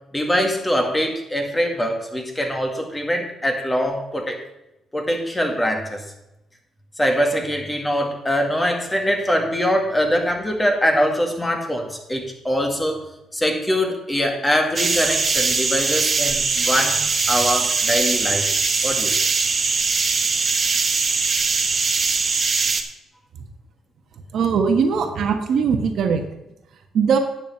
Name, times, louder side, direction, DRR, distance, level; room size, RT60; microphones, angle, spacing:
voice 1, 0.1-4.4 4.9-6.0 7.0-13.0 13.3-18.5 18.8-19.2, equal, 15° left, 3 dB, 2.1 m, -23 dB
sound 1, 14.8-22.8, right 4 dB, 35° right, 1.3 m, -21 dB
voice 2, 24.3-26.3 26.9-27.2, right 6 dB, 65° right, 5 dB, 1.4 m, -20 dB
9.7 x 7.2 x 5.5 m, 0.90 s
cardioid pair, 90°, 0 cm